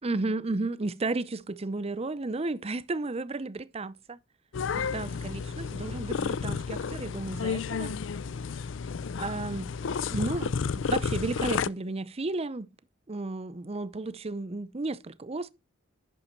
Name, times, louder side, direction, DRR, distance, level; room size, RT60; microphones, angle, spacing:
voice 1, 0.0-4.2 4.7-7.9 9.2-12.7 13.1-15.5, right 2 dB, 30° right, 0.6 m, -33 dB
sound 1, 4.5-11.7, left 5 dB, 65° left, 0.4 m, -31 dB
11.5 x 6.3 x 4.5 m
head